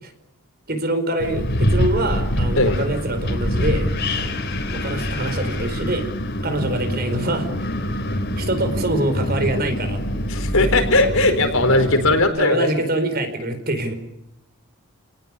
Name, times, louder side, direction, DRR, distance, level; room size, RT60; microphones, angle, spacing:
voice 1, 0.7-6.1 6.4-7.5 8.4-10.0 12.4-13.9, right 1 dB, 45° right, 9 dB, 4.7 m, -25 dB
Wind, 1.2-12.2, equal, 50° left, 3.9 m, -25 dB
voice 2, 10.3-12.7, left 2 dB, 65° left, 7 dB, 4.6 m, -18 dB
30.0 x 19.0 x 9.8 m, 0.82 s
head